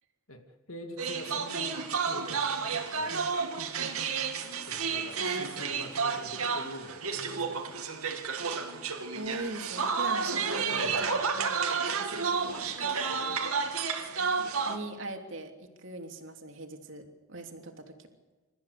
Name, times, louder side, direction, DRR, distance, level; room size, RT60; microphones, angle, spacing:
voice 1, 0.7-3.3 4.7-7.8 10.7-11.2 12.4-12.7, left 1 dB, 75° left, 4 dB, 2.4 m, -45 dB
sound 1, 1.0-14.8, right 5 dB, 85° right, 2.7 m, -31 dB
voice 2, 9.1-11.7 12.8-12.9 13.2-13.4 14.7-17.0 17.3-18.1, right 2 dB, 60° right, 4 dB, 3.1 m, -41 dB
28.5 x 14.5 x 8.4 m, 1.3 s
head